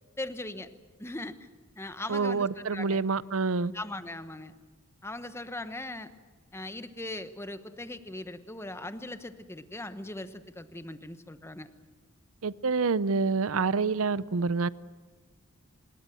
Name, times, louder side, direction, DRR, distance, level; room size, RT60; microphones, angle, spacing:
voice 1, 0.2-0.7 1.0-1.5 1.8-3.0 3.7-4.5 5.0-6.1 6.5-11.7, left 2 dB, 10° left, 11 dB, 1.0 m, -39 dB
voice 2, 2.1-3.7 12.4-14.7, right 4 dB, 70° right, 18 dB, 0.6 m, -27 dB
25.5 x 21.0 x 7.7 m, 1.5 s
head